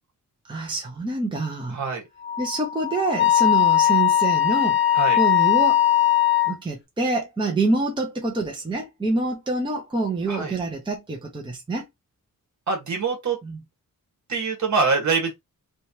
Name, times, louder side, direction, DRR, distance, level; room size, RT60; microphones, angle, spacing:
voice 1, 0.4-1.8 2.4-4.8 5.1-5.8 6.5-11.8 13.4-13.6, right 2 dB, 15° right, 0.8 m, -26 dB
voice 2, 1.7-2.0 4.9-5.2 10.3-10.5 12.7-13.4 14.3-15.3, right 4 dB, 55° right, 1.6 m, -24 dB
Wind instrument woodwind instrument, 2.2-6.5, left 12 dB, 35° left, 1.1 m, -19 dB
3.3 x 3.2 x 2.8 m
wide cardioid pair, 180°, 34 cm